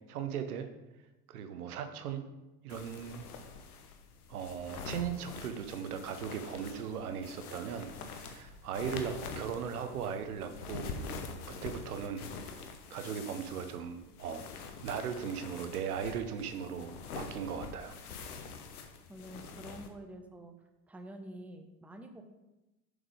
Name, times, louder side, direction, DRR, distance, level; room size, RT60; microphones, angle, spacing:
voice 1, 0.1-0.7 1.3-2.2 2.6-3.2 4.3-14.4 14.8-18.0, right 7 dB, 70° right, 8 dB, 0.9 m, -38 dB
sound 1, 2.7-19.9, left 5 dB, 70° left, 1.0 m, -45 dB
voice 2, 19.1-20.5 20.9-22.2, right 1 dB, 5° right, 5 dB, 0.7 m, -47 dB
7.3 x 5.1 x 5.0 m, 1.0 s
figure-of-eight pair, 75°, 46 cm